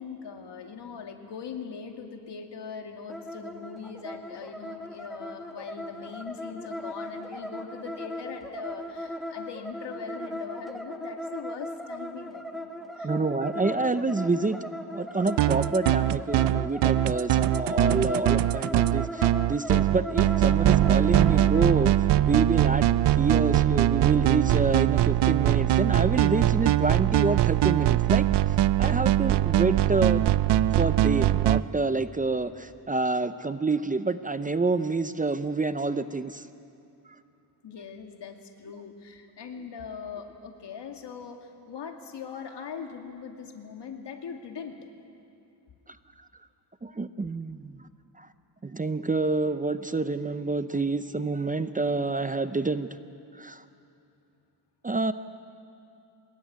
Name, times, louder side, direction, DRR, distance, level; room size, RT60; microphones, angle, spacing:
voice 1, 0.0-13.1 37.6-44.8, left 6 dB, 75° left, 4 dB, 2.4 m, -41 dB
sound 1, 3.1-21.7, left 1 dB, ahead, 1.3 m, -37 dB
voice 2, 13.0-14.6 14.9-28.3 28.8-30.3 30.8-36.4 46.8-47.8 48.2-48.3 48.6-52.9 53.4-53.6 54.8-55.1, right 3 dB, 20° right, 11 dB, 0.6 m, -28 dB
sound 2, 15.3-31.6, right 13 dB, 75° right, 0.5 m, -22 dB
24.5 x 20.5 x 9.4 m, 2.7 s
wide cardioid pair, 130°, 42 cm